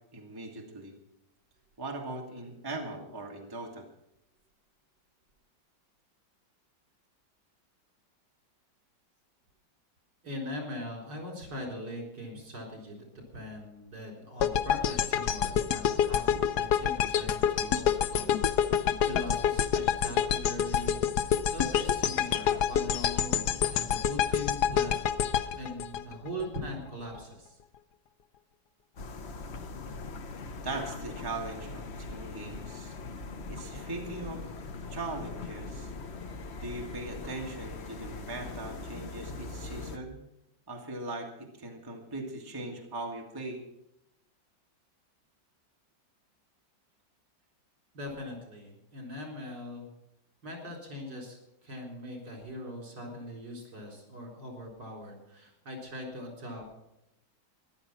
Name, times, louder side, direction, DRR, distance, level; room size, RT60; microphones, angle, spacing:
voice 1, 0.1-0.9 1.8-3.9 30.6-32.9 33.5-34.4 34.9-35.9 36.5-40.1 40.7-43.6, right 2 dB, 10° right, 1 dB, 1.7 m, -39 dB
voice 2, 10.2-13.0 13.3-21.0 21.5-25.1 25.5-27.6 47.9-49.9 50.4-56.8, equal, 65° right, 1 dB, 4.7 m, -41 dB
sound 1, 14.4-26.6, left 8 dB, 65° left, 1.2 m, -27 dB
sound 2, 29.0-40.0, left 3 dB, 45° left, 0.9 m, -41 dB
14.5 x 11.0 x 6.1 m, 0.83 s
omnidirectional pair, 2.0 m